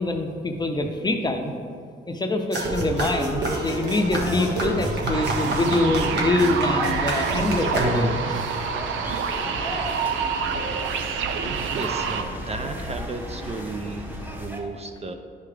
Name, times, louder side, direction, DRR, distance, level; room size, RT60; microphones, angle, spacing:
voice 1, 0.0-1.5 2.1-8.5, left 2 dB, 20° left, 4 dB, 0.7 m, -25 dB
sound 1, 2.5-8.3, right 1 dB, 60° right, 1.5 m, -27 dB
sound 2, 2.6-14.6, equal, 10° right, 1.1 m, -36 dB
sound 3, 5.1-12.2, right 6 dB, 80° right, 0.6 m, -28 dB
voice 2, 11.7-15.1, right 3 dB, 30° right, 6 dB, 0.5 m, -34 dB
10.5 x 4.9 x 3.3 m, 2.2 s
cardioid pair, 90°, 20 cm